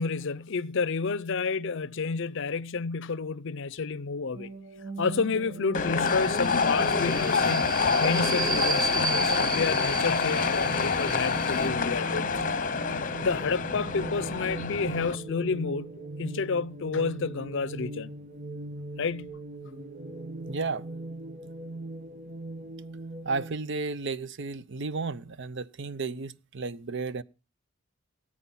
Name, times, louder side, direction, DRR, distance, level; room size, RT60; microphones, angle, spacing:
voice 1, 0.0-4.5 5.0-7.7 8.0-12.4 13.2-15.9 16.2-18.1 19.0-19.4, left 4 dB, 65° left, 0.6 m, -30 dB
sound 1, 4.3-23.5, right 2 dB, 40° right, 1.5 m, -40 dB
sound 2, 5.7-15.1, left 5 dB, 40° left, 0.9 m, -27 dB
Subway metro underground, 6.1-11.7, right 3 dB, 20° right, 0.8 m, -33 dB
voice 2, 20.4-20.8 23.2-27.2, right 4 dB, 60° right, 0.7 m, -33 dB
18.5 x 8.7 x 5.6 m
head